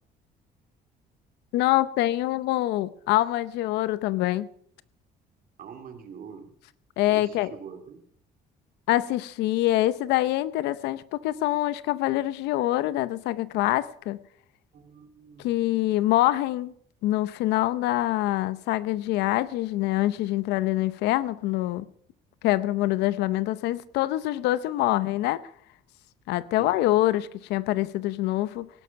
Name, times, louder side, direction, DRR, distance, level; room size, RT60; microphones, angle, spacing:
voice 1, 1.5-4.5 7.0-7.5 8.9-14.2 15.4-16.7 17.0-21.9 22.4-25.4 26.3-28.7, left 15 dB, 85° left, 0.7 m, -25 dB
voice 2, 5.6-6.5 7.1-8.0 14.7-15.5 26.6-26.7, right 7 dB, 55° right, 2.7 m, -44 dB
17.5 x 11.5 x 5.8 m
cardioid pair, 110°, 17 cm